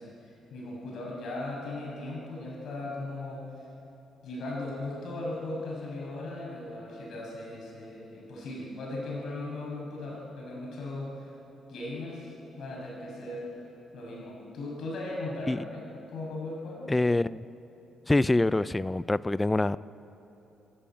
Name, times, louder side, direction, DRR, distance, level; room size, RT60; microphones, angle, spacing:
voice 1, 0.0-3.4 4.2-11.3 11.7-13.5 13.9-16.9, left 2 dB, 70° left, -2 dB, 6.7 m, -38 dB
voice 2, 16.9-17.4 18.1-19.8, left 2 dB, 15° left, 18 dB, 0.4 m, -25 dB
29.0 x 11.5 x 8.7 m, 3.0 s
cardioid pair, 90°, 0 cm